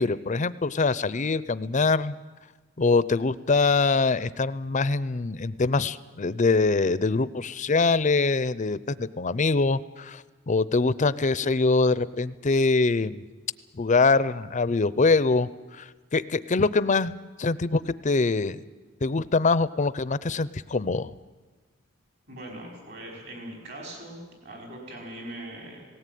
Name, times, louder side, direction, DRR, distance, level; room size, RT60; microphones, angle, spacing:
voice 1, 0.0-2.1 2.8-13.2 13.8-15.5 15.8-15.9 16.1-18.6 19.0-21.1, left 3 dB, 40° left, 17 dB, 0.6 m, -24 dB
voice 2, 22.3-25.9, right 1 dB, 55° right, 1 dB, 5.5 m, -41 dB
18.5 x 17.5 x 9.3 m, 1.3 s
head